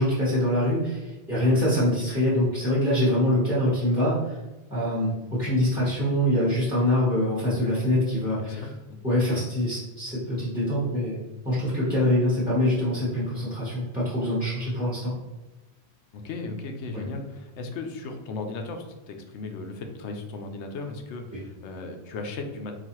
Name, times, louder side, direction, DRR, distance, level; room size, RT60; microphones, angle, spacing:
voice 1, 0.0-4.4 4.7-8.7 9.0-11.2 11.4-15.1 16.9-17.0 21.3-21.4, left 1 dB, 5° right, -10 dB, 0.9 m, -24 dB
voice 2, 8.5-9.0 16.1-22.7, left 3 dB, 85° left, 5 dB, 0.9 m, -36 dB
3.9 x 2.5 x 2.9 m, 1.1 s
omnidirectional pair, 1.1 m